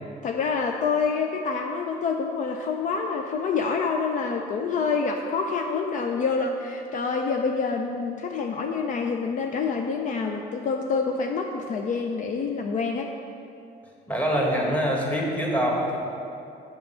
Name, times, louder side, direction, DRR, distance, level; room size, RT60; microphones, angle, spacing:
voice 1, 0.2-13.1, left 5 dB, 50° left, 3 dB, 0.5 m, -27 dB
voice 2, 14.1-16.0, equal, 10° left, -2 dB, 1.6 m, -24 dB
6.9 x 5.5 x 5.5 m, 2.6 s
cardioid pair, 110°, 17 cm